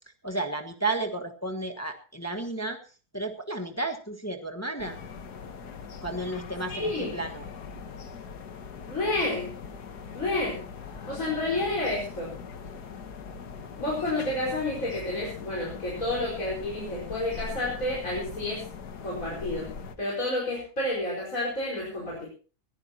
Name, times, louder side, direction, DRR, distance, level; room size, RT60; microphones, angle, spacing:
voice 1, 0.2-2.8 3.1-5.0 6.0-7.5, right 2 dB, 10° left, 4 dB, 1.3 m, -32 dB
sound 1, 4.8-20.0, left 5 dB, 80° left, 1.8 m, -41 dB
voice 2, 6.7-7.2 8.9-9.5 10.1-10.6 11.1-12.3 13.8-18.6 19.0-22.3, left 2 dB, 55° left, -5 dB, 5.4 m, -30 dB
21.0 x 16.0 x 2.9 m, 0.38 s
omnidirectional pair, 1.7 m